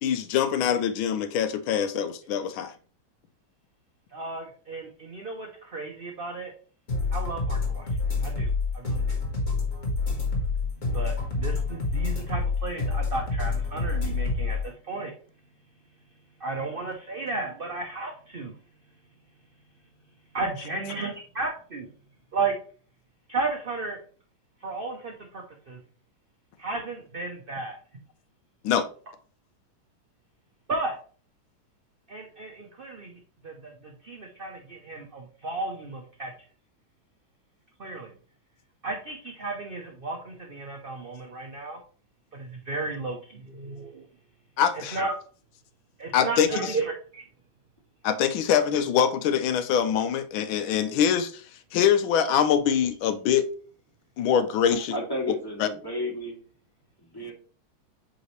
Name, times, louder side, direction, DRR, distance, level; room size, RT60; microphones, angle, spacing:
voice 1, 0.0-2.7 28.6-28.9 44.6-45.0 46.1-46.7 48.0-51.4 51.7-53.5 54.2-54.9 55.6-55.7, left 8 dB, 85° left, 1.4 m, -24 dB
voice 2, 4.1-6.5 7.1-7.9 8.2-9.2 10.6-15.1 16.4-18.6 20.3-21.9 22.3-22.6 23.3-24.0 24.6-25.8 26.6-27.8 30.7-31.0 32.1-36.3 37.8-38.1 38.8-41.8 42.3-44.0 44.7-45.1 46.0-47.2, right 3 dB, 70° right, 0.5 m, -34 dB
sound 1, 6.9-14.6, left 4 dB, 40° left, 2.0 m, -27 dB
voice 3, 54.7-56.4 57.0-57.3, left 1 dB, 10° left, 2.2 m, -33 dB
8.0 x 3.9 x 3.1 m
omnidirectional pair, 2.1 m